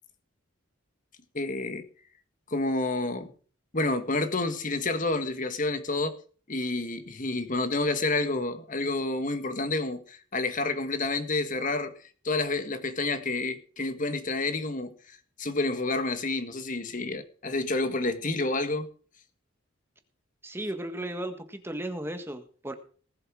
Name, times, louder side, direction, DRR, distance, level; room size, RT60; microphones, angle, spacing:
voice 1, 1.3-1.8 2.5-3.3 3.7-6.1 6.5-11.9 12.2-18.9, left 2 dB, 40° left, 1.7 m, -29 dB
voice 2, 20.4-22.7, right 1 dB, 10° right, 1.6 m, -35 dB
19.5 x 7.9 x 4.8 m
head